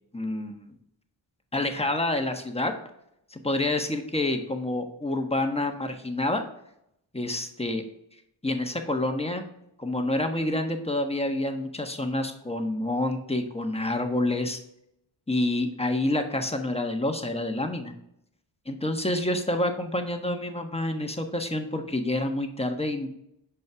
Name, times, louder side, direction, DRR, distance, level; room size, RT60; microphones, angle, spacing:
voice 1, 0.1-0.8 1.5-2.7 3.3-6.4 7.1-7.8 8.4-9.4 9.8-14.6 15.3-17.9 18.7-23.1, left 1 dB, 15° left, 5 dB, 1.3 m, -28 dB
6.6 x 5.2 x 3.6 m, 0.77 s
supercardioid pair, 45°, 46 cm